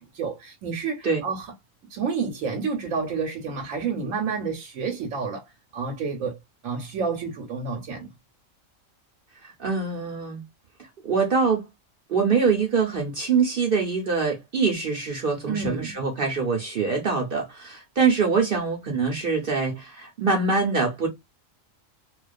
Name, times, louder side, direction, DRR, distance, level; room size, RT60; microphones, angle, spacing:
voice 1, 0.0-1.5 1.9-5.4 5.7-6.4 6.6-8.1 15.5-15.9, right 5 dB, 85° right, 1.1 m, -29 dB
voice 2, 9.4-10.4 11.0-11.6 12.1-21.1, right 5 dB, 50° right, 0.8 m, -24 dB
2.3 x 2.3 x 2.3 m
omnidirectional pair, 1.4 m